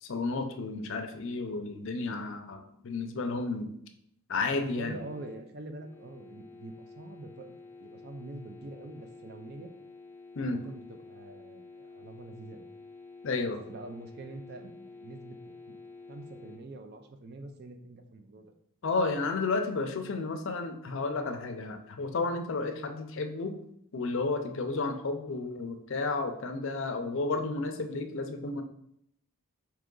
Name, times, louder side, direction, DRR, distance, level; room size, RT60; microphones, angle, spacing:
voice 1, 0.0-3.7 4.3-5.0 10.4-10.6 13.2-13.6 18.8-23.6 23.9-28.6, left 3 dB, 60° left, 6 dB, 0.5 m, -32 dB
voice 2, 4.5-9.7 10.4-12.7 13.7-15.8 16.1-18.4, right 2 dB, 45° right, 6 dB, 0.5 m, -45 dB
sound 1, 4.8-16.6, left 3 dB, 10° left, 0.7 m, -50 dB
4.6 x 3.0 x 3.8 m, 0.73 s
head